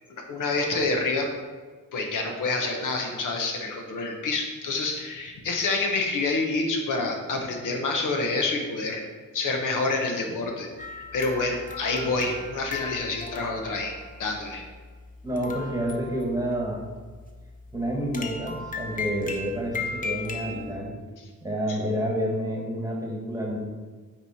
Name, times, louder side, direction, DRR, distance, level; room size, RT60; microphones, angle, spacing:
voice 1, 0.3-1.3 1.9-9.0 9.3-10.7 11.1-14.6, left 3 dB, 70° left, 2 dB, 1.1 m, -27 dB
sound 1, 10.8-20.7, left 4 dB, 25° left, 0.8 m, -37 dB
voice 2, 15.2-16.8 17.7-20.9 21.4-23.6, equal, 10° right, -1 dB, 1.4 m, -29 dB
8.9 x 3.2 x 4.2 m, 1.4 s
cardioid pair, 95°, 33 cm